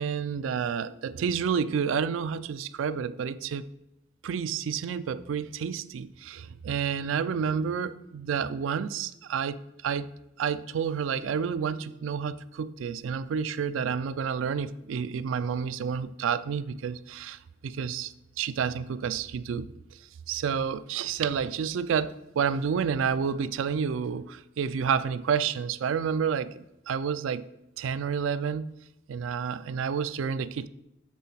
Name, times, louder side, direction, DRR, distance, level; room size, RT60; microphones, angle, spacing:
voice 1, 0.0-3.7 4.2-10.1 10.4-19.7 20.3-27.5 27.8-28.7 29.1-30.7, right 7 dB, 85° right, 0.4 m, -30 dB
7.6 x 3.6 x 5.5 m
head